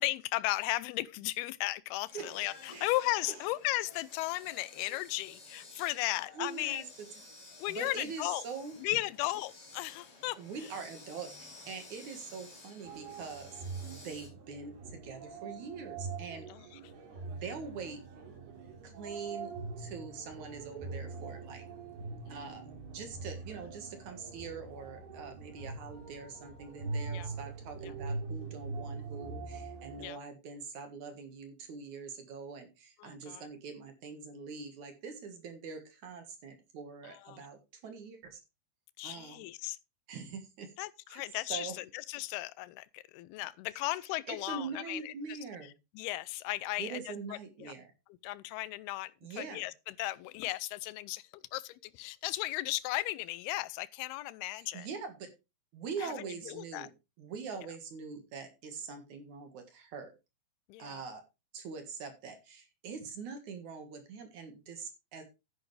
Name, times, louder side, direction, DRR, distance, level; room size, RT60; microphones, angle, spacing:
voice 1, 0.0-6.8 7.6-8.4 8.8-10.4 16.5-16.6 27.1-27.3 27.8-27.9 30.0-30.2 33.0-33.4 37.3-37.4 39.0-39.8 40.8-45.4 46.0-47.0 47.6-47.7 48.2-49.1 49.4-51.2 51.5-54.9 56.0-56.1 56.5-56.9 60.7-61.0, left 18 dB, 85° left, 2.6 m, -35 dB
sound 1, 2.1-14.3, left 2 dB, 35° left, 5.7 m, -53 dB
voice 2, 6.3-6.8 7.7-8.7 10.4-13.5 13.9-16.7 17.3-18.0 18.8-21.6 22.3-38.4 39.0-39.5 40.1-40.7 41.1-41.2 41.5-41.7 44.3-45.7 46.8-47.9 49.2-49.6 54.6-55.3 55.7-56.9 57.2-60.1 60.8-61.2 61.5-65.2, right 5 dB, 55° right, 2.7 m, -43 dB
sound 2, 12.8-30.1, right 4 dB, 85° right, 4.8 m, -43 dB
11.0 x 10.5 x 3.3 m
omnidirectional pair, 4.5 m